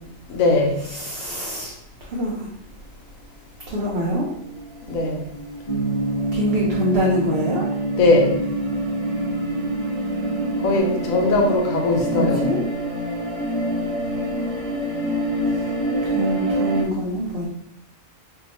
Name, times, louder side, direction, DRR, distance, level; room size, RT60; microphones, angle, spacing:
voice 1, 0.3-0.8 4.9-5.2 8.0-8.3 10.6-12.5, left 2 dB, 80° left, 1 dB, 1.1 m, -19 dB
voice 2, 0.9-1.7 2.1-2.5 3.7-4.3 6.3-7.6 12.1-12.6 16.1-17.5, equal, 60° right, -3 dB, 0.7 m, -24 dB
sound 1, 3.8-16.8, right 1 dB, 75° right, 1.1 m, -28 dB
sound 2, 5.7-10.8, right 2 dB, 30° left, 0.8 m, -26 dB
2.7 x 2.3 x 4.0 m, 0.75 s
omnidirectional pair, 1.4 m